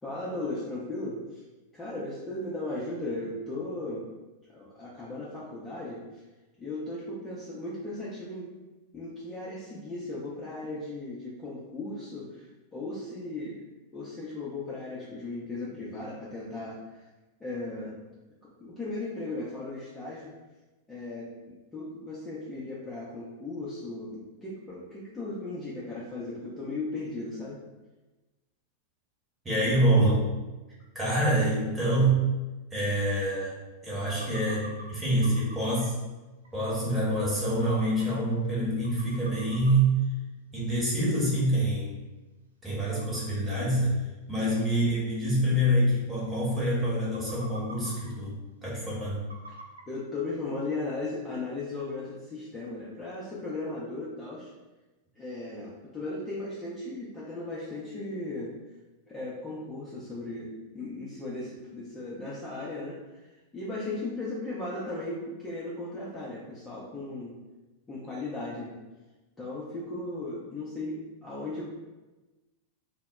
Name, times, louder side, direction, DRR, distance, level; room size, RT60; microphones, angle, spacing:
voice 1, 0.0-1.4 1.7-4.0 4.5-6.2 6.6-8.5 8.9-17.0 17.4-18.0 18.4-20.3 20.9-27.6 44.3-44.5 49.9-54.5 55.2-58.5 59.1-63.3 63.5-67.4 67.9-68.8 69.4-71.6, left 2 dB, 15° left, -8 dB, 0.5 m, -37 dB
voice 2, 29.4-30.3 30.9-32.3 32.7-35.9 36.5-40.0 40.5-41.9 42.6-43.9 44.3-48.4 48.6-49.2, right 1 dB, 15° right, -7 dB, 0.9 m, -26 dB
sound 1, 34.0-34.8 35.2-35.9 36.4-36.5 36.8-36.9 37.4-38.0 38.5-38.6 38.8-39.7 40.1-40.2 41.4-41.5 41.9-42.0 43.0-43.2 44.0-44.1 44.7-44.8 45.1-45.2 45.4-45.5 46.0-46.1 46.3-46.6 47.0-48.1 49.3-49.8, right 1 dB, 75° right, 0.3 m, -45 dB
2.1 x 2.0 x 3.5 m, 1.1 s
figure-of-eight pair, 90°, 0 cm